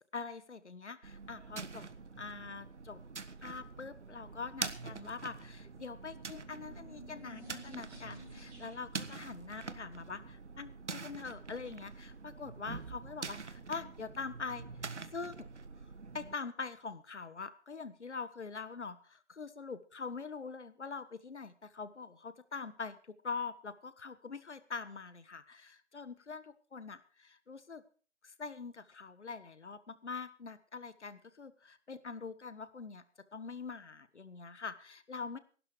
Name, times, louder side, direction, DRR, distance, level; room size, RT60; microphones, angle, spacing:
voice 1, 0.1-1.9 2.2-3.0 3.4-15.5 16.1-27.8 28.2-33.0 33.3-35.4, left 4 dB, 75° left, 14 dB, 1.5 m, -44 dB
sound 1, 1.0-16.3, right 4 dB, 75° right, 1.4 m, -45 dB
sound 2, 6.1-9.1, right 1 dB, 5° right, 3.1 m, -53 dB
15.5 x 12.0 x 4.8 m, 0.41 s
figure-of-eight pair, 165°, 35 cm